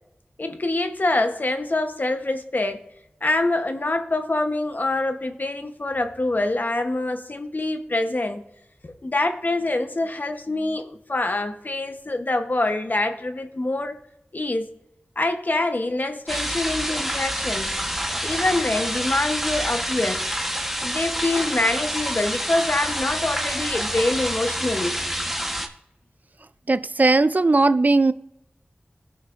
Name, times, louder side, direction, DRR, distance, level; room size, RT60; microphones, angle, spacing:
voice 1, 0.4-2.9 3.2-8.4 8.8-14.0 14.3-14.7 15.2-17.7 18.2-20.3 20.8-25.0, left 2 dB, 50° left, 0.9 m, -25 dB
sound 1, 16.3-25.7, equal, 5° right, 1.1 m, -27 dB
voice 2, 26.7-28.1, right 3 dB, 45° right, 0.4 m, -18 dB
15.0 x 6.3 x 2.5 m
wide cardioid pair, 55°, 4 cm